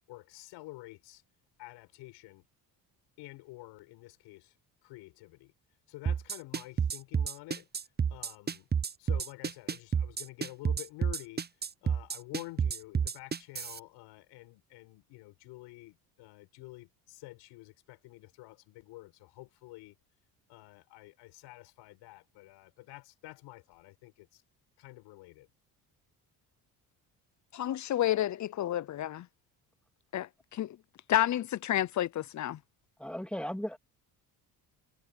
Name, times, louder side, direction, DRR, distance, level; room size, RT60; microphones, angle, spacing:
voice 1, 0.1-1.2 1.6-2.4 3.2-4.5 4.8-5.5 5.9-7.7 8.1-8.7 9.0-11.4 11.8-19.9 20.5-24.4 24.8-25.5, left 20 dB, 85° left, 6.4 m, -49 dB
sound 1, 6.1-13.8, right 6 dB, 25° right, 0.8 m, -30 dB
voice 2, 27.5-29.3 30.1-30.8 31.1-32.6, left 12 dB, 45° left, 0.7 m, -30 dB
voice 3, 33.0-33.8, equal, 5° left, 2.6 m, -36 dB
supercardioid pair, 80°, 41 cm